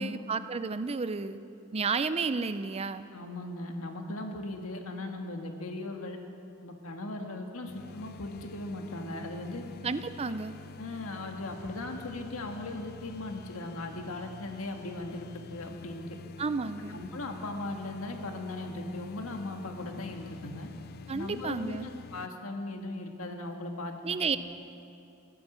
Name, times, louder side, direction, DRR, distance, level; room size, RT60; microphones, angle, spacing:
voice 1, 0.0-1.4 1.7-3.1 9.8-10.5 16.4-17.0 21.1-21.9 24.0-24.4, right 4 dB, 30° right, 12 dB, 0.4 m, -31 dB
voice 2, 3.1-6.2 6.6-9.6 10.8-16.0 16.9-20.7 21.1-24.4, left 2 dB, 85° left, 3 dB, 1.7 m, -38 dB
sound 1, 7.7-22.3, left 5 dB, 45° left, 0.3 m, -48 dB
15.5 x 11.5 x 7.3 m, 2.8 s
head